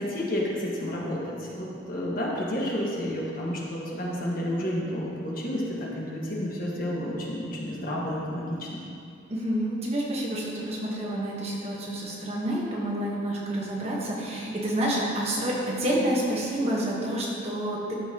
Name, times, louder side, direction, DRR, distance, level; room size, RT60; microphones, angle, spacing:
voice 1, 0.0-5.7 5.9-8.8, equal, 50° left, -4 dB, 1.5 m, -30 dB
voice 2, 9.3-17.9, right 1 dB, 35° right, -4 dB, 1.2 m, -28 dB
13.0 x 5.7 x 2.9 m, 2.5 s
head